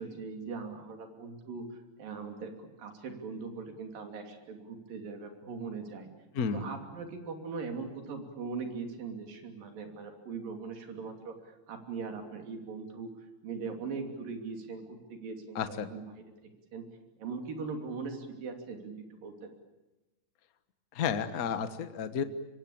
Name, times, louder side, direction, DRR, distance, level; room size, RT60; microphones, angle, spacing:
voice 1, 0.0-1.6 2.0-6.1 6.5-13.1 13.4-16.2 16.7-16.8 17.2-19.0 19.2-19.5, right 4 dB, 85° right, 5 dB, 4.7 m, -40 dB
voice 2, 6.3-6.7 15.5-15.9 20.9-22.2, left 6 dB, 70° left, 10 dB, 0.8 m, -32 dB
25.0 x 23.5 x 8.7 m, 1.0 s
omnidirectional pair, 3.9 m